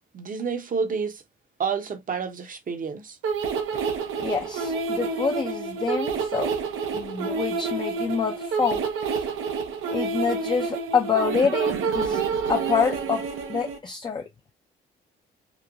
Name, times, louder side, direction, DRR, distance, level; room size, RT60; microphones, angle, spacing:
voice 1, 0.1-1.2 1.6-3.2, right 5 dB, 40° right, 0.7 m, -29 dB
sound 1, 3.2-13.8, right 5 dB, 80° right, 0.6 m, -28 dB
voice 2, 4.2-6.5 6.9-8.8 9.2-9.3 9.9-12.2 12.5-13.2 13.5-14.2, left 5 dB, 20° left, 0.4 m, -26 dB
3.0 x 2.1 x 2.5 m
cardioid pair, 75°, 21 cm